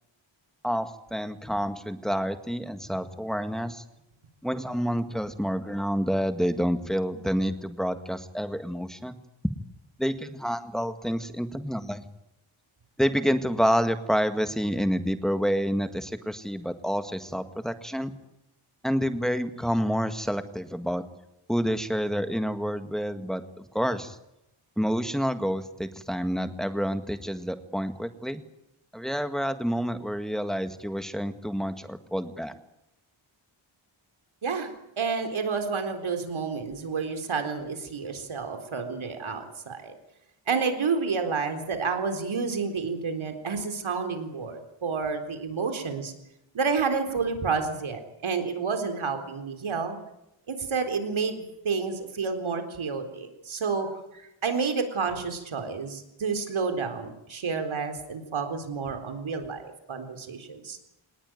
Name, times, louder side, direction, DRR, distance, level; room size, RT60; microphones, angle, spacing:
voice 1, 0.6-3.8 4.4-9.2 10.0-12.0 13.0-18.1 18.8-21.0 21.5-24.2 24.8-28.4 28.9-32.5, equal, ahead, 8 dB, 1.8 m, -28 dB
voice 2, 34.4-39.9 40.5-46.1 46.5-50.0 50.5-60.8, right 5 dB, 70° right, 6 dB, 4.0 m, -30 dB
25.0 x 19.5 x 9.3 m, 0.86 s
wide cardioid pair, 155°, 49 cm